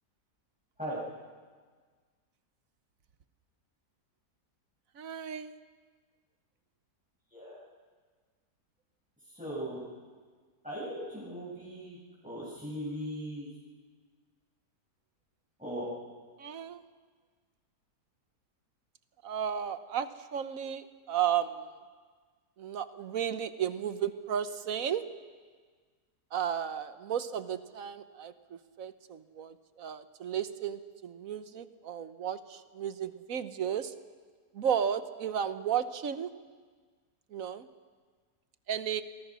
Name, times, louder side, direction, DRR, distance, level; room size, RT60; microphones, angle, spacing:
voice 1, 5.0-5.5 16.4-16.8 19.2-21.7 22.6-25.0 26.3-33.9 34.5-36.3 37.3-37.7 38.7-39.0, right 9 dB, 55° right, 11 dB, 1.3 m, -34 dB
voice 2, 9.3-9.8 10.6-12.0 12.2-13.5 15.6-15.9, equal, 5° right, -9 dB, 7.7 m, -38 dB
29.5 x 23.0 x 6.3 m, 1.5 s
omnidirectional pair, 1.8 m